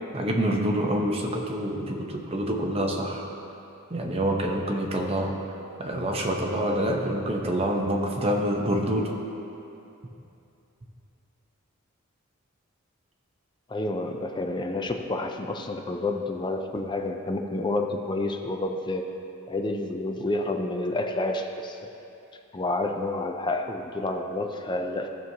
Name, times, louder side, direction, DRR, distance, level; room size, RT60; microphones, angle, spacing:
voice 1, 0.1-3.2 3.9-5.4 5.8-9.2, right 1 dB, 30° right, 0 dB, 0.9 m, -26 dB
voice 2, 13.7-19.1 19.5-21.8 22.5-25.1, left 2 dB, 20° left, 4 dB, 0.5 m, -29 dB
15.5 x 6.2 x 2.8 m, 2.8 s
head